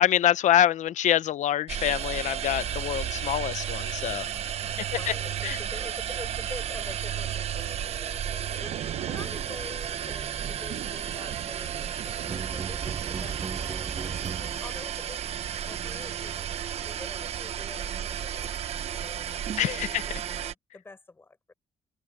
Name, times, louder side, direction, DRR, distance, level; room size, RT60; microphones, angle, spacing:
voice 1, 0.0-4.3 5.4-5.6 19.6-20.0, left 11 dB, 80° left, 0.8 m, -25 dB
sound 1, 1.7-20.5, right 9 dB, 55° right, 1.1 m, -33 dB
voice 2, 4.6-19.3 19.6-21.5, left 3 dB, 20° left, 5.7 m, -46 dB
Thunder / Rain, 6.8-16.7 17.1-17.3, right 11 dB, 80° right, 1.0 m, -43 dB
sound 2, 12.2-15.0, right 6 dB, 30° right, 0.9 m, -36 dB
wide cardioid pair, 180°, 12 cm